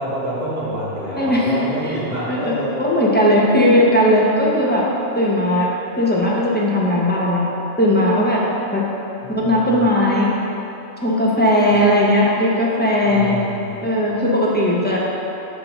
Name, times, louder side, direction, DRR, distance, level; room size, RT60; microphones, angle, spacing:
voice 1, 0.0-2.8 9.2-9.9 11.7-11.8 13.1-13.9, right 1 dB, 50° right, -8 dB, 1.5 m, -27 dB
voice 2, 1.2-1.6 1.8-1.9 2.3-4.8 5.1-5.7 6.0-7.4 7.8-8.4 8.7-8.8 9.3-10.3 11.0-13.4 13.8-15.0, left 1 dB, 10° left, -6 dB, 0.7 m, -17 dB
7.3 x 2.8 x 6.0 m, 3.0 s
omnidirectional pair, 1.3 m